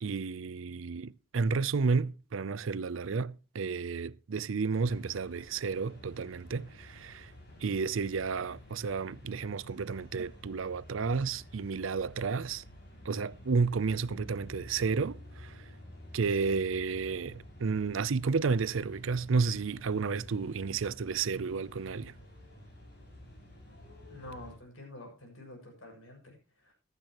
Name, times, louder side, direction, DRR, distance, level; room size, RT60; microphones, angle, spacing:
voice 1, 0.0-7.3 7.6-12.6 13.0-15.5 16.1-22.1, right 4 dB, 85° right, 0.5 m, -31 dB
sound 1, 4.7-24.6, left 1 dB, 55° left, 5.7 m, -51 dB
voice 2, 24.1-26.7, left 1 dB, 85° left, 6.7 m, -48 dB
15.5 x 12.5 x 3.0 m
head